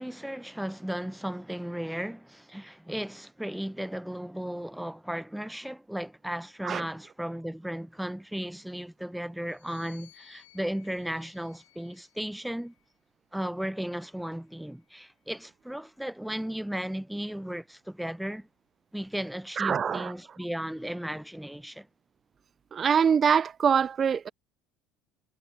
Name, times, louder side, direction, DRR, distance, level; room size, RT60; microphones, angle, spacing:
voice 1, 0.0-12.7 13.3-18.5 18.9-21.9, equal, 5° right, 0.7 m, -35 dB
sound 1, 9.4-13.0 13.9-15.5, left 17 dB, 90° left, 6.5 m, -60 dB
voice 2, 19.6-20.1 22.7-24.3, right 7 dB, 40° right, 0.3 m, -24 dB
supercardioid pair, 80°, 0 cm